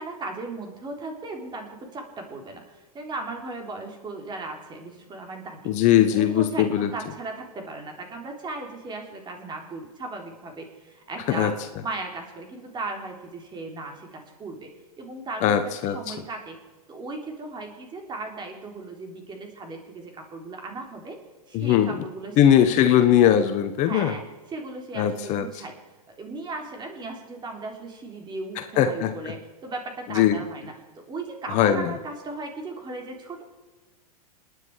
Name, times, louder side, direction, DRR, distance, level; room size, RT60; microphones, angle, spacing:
voice 1, 0.0-5.7 6.1-11.5 11.8-14.7 15.0-16.6 16.9-21.2 21.5-22.6 23.9-24.2 24.5-25.8 26.2-30.7 31.1-33.4, right 3 dB, 20° right, 2 dB, 3.5 m, -37 dB
voice 2, 5.7-6.9 11.3-11.5 15.4-16.1 21.5-22.0 22.4-24.1 25.0-25.5 28.6-29.3 30.1-30.4 31.5-31.9, left 10 dB, 40° left, 9 dB, 1.1 m, -20 dB
28.0 x 9.9 x 4.8 m, 1.3 s
hypercardioid pair, 115°, 19 cm